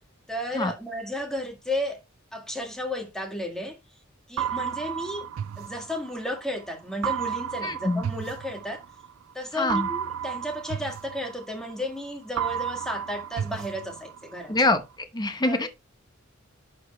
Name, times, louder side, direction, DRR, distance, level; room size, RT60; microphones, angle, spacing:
voice 1, 0.3-2.0 2.3-3.8 4.3-5.3 5.6-8.8 9.3-14.6 15.4-15.7, left 1 dB, 5° left, 1.7 m, -33 dB
sound 1, 4.4-6.4 7.0-9.1 9.7-12.0 12.4-14.4, right 8 dB, 85° right, 0.3 m, -32 dB
voice 2, 7.6-8.0 9.5-9.9 14.5-15.7, left 2 dB, 20° left, 0.9 m, -25 dB
11.5 x 4.5 x 3.1 m
head